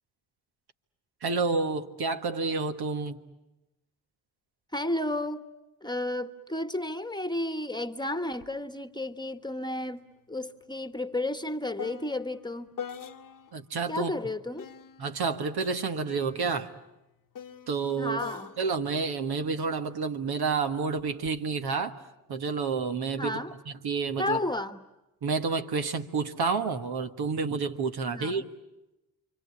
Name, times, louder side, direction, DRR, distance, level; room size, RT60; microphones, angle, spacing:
voice 1, 1.2-3.2 13.5-14.1 15.0-16.7 17.7-18.2 18.6-22.0 22.3-24.4 25.2-28.5, right 4 dB, 60° right, 1.6 m, -29 dB
voice 2, 4.7-5.5 5.8-12.7 13.9-14.7 18.0-18.5 23.2-23.5 24.2-24.8 28.1-28.4, left 1 dB, 10° left, 1.4 m, -32 dB
sound 1, 8.4-8.6 8.9-13.7 14.6-20.1 21.0-21.4, left 7 dB, 50° left, 1.2 m, -45 dB
28.5 x 24.5 x 8.4 m
hypercardioid pair, 45°, 43 cm